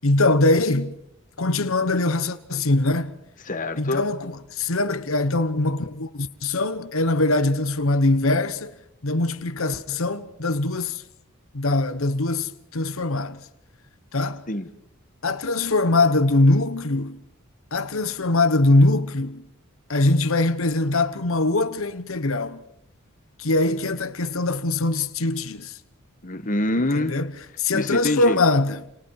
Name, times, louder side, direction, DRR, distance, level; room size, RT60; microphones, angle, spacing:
voice 1, 0.0-1.0 1.4-3.1 3.8-8.8 9.0-11.0 11.5-13.4 14.1-14.4 15.2-17.2 17.7-19.4 19.9-22.6 23.4-25.8 26.9-27.3 27.6-29.0, left 2 dB, 65° left, 1.2 m, -22 dB
voice 2, 3.5-4.0 14.5-14.7 26.2-27.2 27.7-28.4, left 1 dB, 40° left, 1.5 m, -25 dB
29.5 x 29.0 x 4.8 m
head